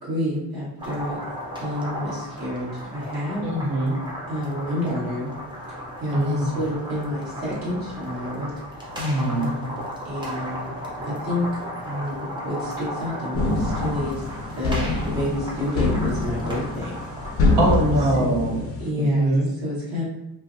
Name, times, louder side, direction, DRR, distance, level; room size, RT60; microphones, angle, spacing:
voice 1, 0.0-1.2 1.6-3.4 4.3-5.3 6.0-8.5 9.3-9.8 10.0-10.7 11.0-11.5 11.8-14.2 14.5-16.9 18.2-19.3 19.6-20.0, left 1 dB, 50° right, -9 dB, 1.3 m, -29 dB
sound 1, 0.8-18.1, equal, 10° right, 0.5 m, -35 dB
voice 2, 3.4-4.0 6.1-6.6 9.0-9.6 17.6-18.6 19.0-19.5, right 1 dB, 75° right, -2 dB, 0.9 m, -23 dB
sound 2, 13.3-18.9, left 2 dB, 35° left, 0.4 m, -25 dB
2.6 x 2.1 x 2.5 m, 0.90 s
cardioid pair, 105°, 42 cm